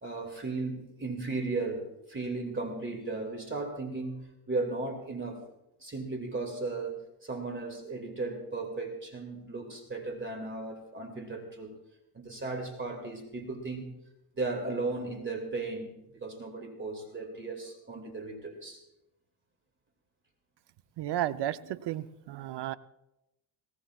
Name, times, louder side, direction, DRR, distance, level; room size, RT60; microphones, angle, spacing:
voice 1, 0.0-5.4 5.8-11.7 12.1-13.9 14.4-18.8, right 3 dB, 25° right, 4 dB, 2.4 m, -36 dB
voice 2, 21.0-22.8, right 12 dB, 60° right, 13 dB, 0.7 m, -33 dB
19.5 x 18.0 x 2.4 m, 0.90 s
cardioid pair, 115°, 46 cm